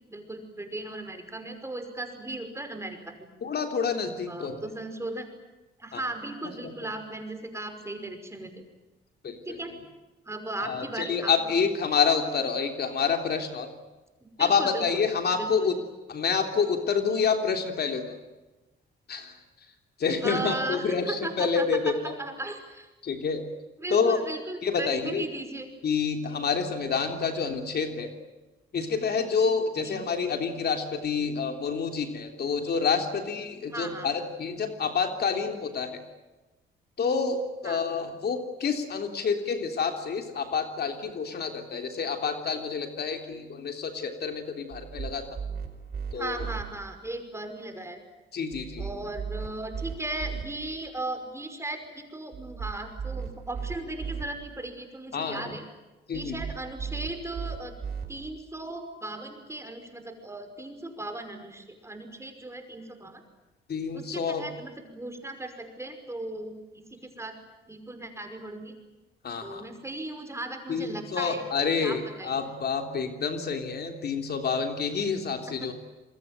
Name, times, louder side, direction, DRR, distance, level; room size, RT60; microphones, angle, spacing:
voice 1, 0.1-3.3 4.3-5.3 5.8-8.6 9.5-9.7 10.3-11.5 14.2-14.9 15.3-15.8 20.2-22.9 23.8-25.7 29.8-30.0 33.7-34.1 37.6-37.8 46.1-48.0 48.8-55.6 56.1-57.8 58.1-63.2 63.9-67.4 67.7-68.8 69.4-71.4 71.8-72.4 75.5-75.7, right 2 dB, 15° right, 6 dB, 5.5 m, -37 dB
voice 2, 3.4-4.6 5.9-6.0 9.2-9.6 10.6-13.7 14.4-15.7 16.1-18.1 19.1-19.3 20.0-22.1 23.0-23.4 23.9-24.2 24.6-25.2 25.8-28.1 28.7-36.0 37.0-45.4 46.1-46.4 48.3-48.9 55.1-55.4 56.1-56.4 63.7-64.5 69.2-69.6 70.7-75.7, left 5 dB, 55° left, 5 dB, 3.4 m, -28 dB
sound 1, 44.7-46.6 48.5-50.4 52.3-54.2 56.1-58.1, right 6 dB, 50° right, 5.0 m, -36 dB
28.0 x 22.0 x 9.1 m, 1.1 s
cardioid pair, 90°, 20 cm